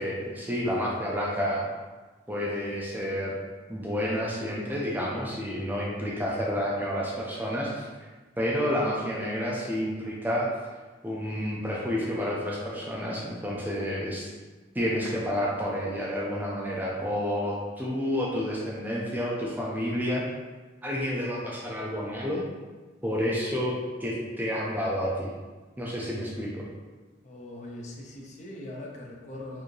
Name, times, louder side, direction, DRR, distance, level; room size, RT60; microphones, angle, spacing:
voice 1, 0.0-1.7 2.3-3.4 3.7-8.1 8.4-10.5 11.0-14.3 14.7-20.2 20.8-22.4 23.0-23.7 24.0-25.3 25.8-26.6, equal, 10° right, -4 dB, 0.5 m, -30 dB
voice 2, 27.2-29.6, left 1 dB, 35° left, -2 dB, 0.6 m, -41 dB
4.5 x 2.7 x 3.1 m, 1.3 s
head